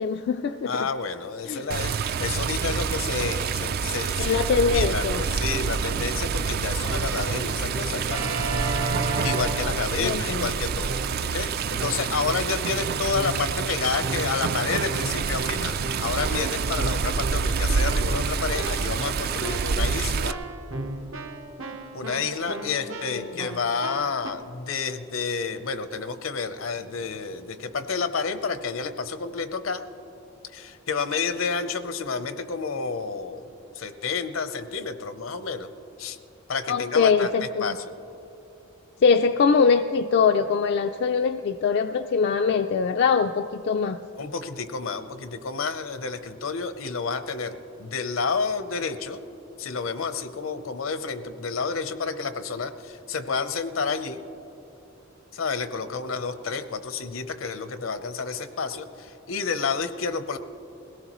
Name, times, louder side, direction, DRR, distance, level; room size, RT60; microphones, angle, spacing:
voice 1, 0.0-0.9 1.4-1.7 4.2-5.2 10.0-10.5 23.1-23.4 36.7-37.8 39.0-44.0, left 5 dB, 55° left, 7 dB, 0.3 m, -23 dB
voice 2, 0.7-4.4 4.7-8.3 9.2-11.0 11.3-20.4 21.9-29.8 30.5-35.7 36.0-36.2 36.5-37.3 37.6-37.9 44.2-49.2 49.6-54.2 55.3-60.4, left 5 dB, 75° left, 10 dB, 0.7 m, -30 dB
Water, 1.7-20.3, right 5 dB, 50° right, 0.4 m, -27 dB
Keyboard (musical), 6.8-10.4 10.9-11.4 11.8-24.3, right 2 dB, 75° right, 1.2 m, -34 dB
21.0 x 17.0 x 3.0 m, 2.9 s
head